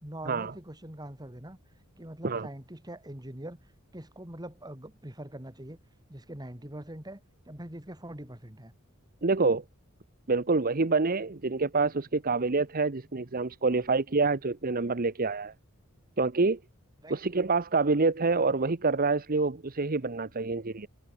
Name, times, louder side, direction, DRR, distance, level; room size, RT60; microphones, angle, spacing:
voice 1, 0.0-1.6 2.0-3.6 3.9-5.8 6.1-7.2 7.5-8.7 17.0-17.2, right 1 dB, 20° right, 3.4 m, -43 dB
voice 2, 9.2-9.6 10.3-15.5 16.2-16.6 17.1-20.9, right 3 dB, 45° right, 1.0 m, -27 dB
head